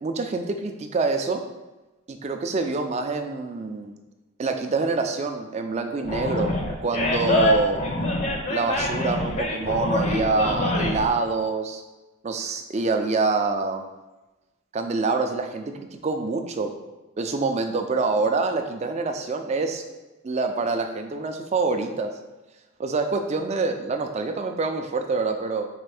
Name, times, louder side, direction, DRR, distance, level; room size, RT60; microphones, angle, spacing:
voice 1, 0.0-1.4 2.1-3.9 4.4-6.6 6.8-7.9 8.5-11.8 12.2-13.9 14.7-16.7 17.2-19.8 20.2-22.1 22.8-25.7, right 3 dB, 30° right, 6 dB, 0.3 m, -26 dB
Animal, 6.0-11.1, left 1 dB, 30° left, 0.5 m, -25 dB
4.3 x 2.5 x 4.8 m, 1.1 s
head